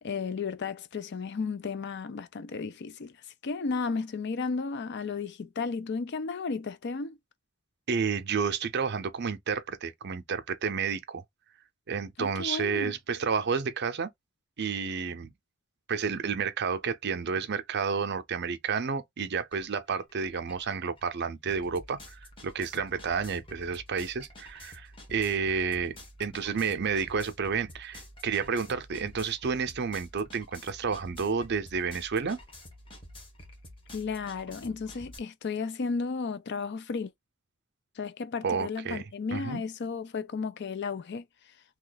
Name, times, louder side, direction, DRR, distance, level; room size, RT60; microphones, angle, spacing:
voice 1, 0.0-3.2 3.4-7.2 12.2-13.0 33.9-37.1 38.0-41.5, left 4 dB, 55° left, 0.5 m, -34 dB
voice 2, 7.9-11.2 11.9-14.1 14.6-15.3 15.9-25.9 26.2-32.4 38.4-39.0 39.3-39.6, right 5 dB, 55° right, 0.5 m, -30 dB
sound 1, 19.5-19.7 20.0-35.2, left 1 dB, 25° left, 1.1 m, -49 dB
2.9 x 2.4 x 3.9 m
head